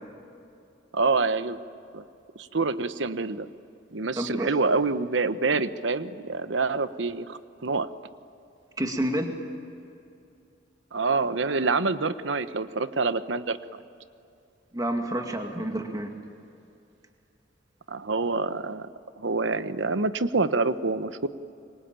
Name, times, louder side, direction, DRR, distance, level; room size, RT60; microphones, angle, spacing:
voice 1, 0.9-1.6 1.9-2.0 2.4-3.5 3.9-7.9 10.9-13.8 17.9-18.9 19.2-21.3, right 3 dB, 75° right, 12 dB, 1.0 m, -26 dB
voice 2, 4.2-4.5 8.8-9.3 14.7-16.1, right 1 dB, 20° right, 3 dB, 2.2 m, -29 dB
26.5 x 23.5 x 9.0 m, 2.6 s
head